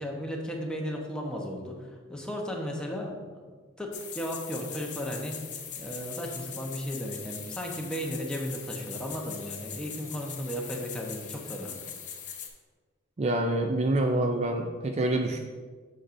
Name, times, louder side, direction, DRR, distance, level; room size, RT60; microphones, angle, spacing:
voice 1, 0.0-5.4 5.8-11.8, equal, 5° left, -1 dB, 0.9 m, -35 dB
sound 1, 3.9-12.5, left 7 dB, 40° left, 0.8 m, -41 dB
voice 2, 13.2-15.4, right 1 dB, 35° right, 4 dB, 0.4 m, -26 dB
8.4 x 6.4 x 2.6 m, 1.5 s
head